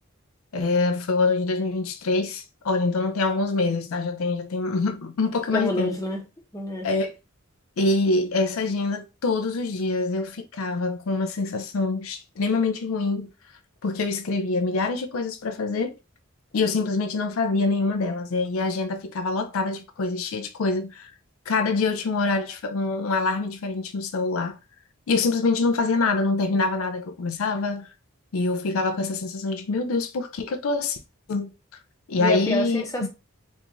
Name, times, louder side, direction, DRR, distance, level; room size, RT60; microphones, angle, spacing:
voice 1, 0.5-5.9 6.8-7.2 7.8-13.3 13.8-16.0 16.5-21.1 21.5-24.6 25.1-27.9 28.3-31.0 31.3-31.5 32.1-32.8, left 3 dB, 80° left, 0.4 m, -25 dB
voice 2, 5.5-6.2 6.5-6.9 32.2-33.1, equal, 15° left, 0.8 m, -27 dB
3.5 x 2.4 x 3.0 m
head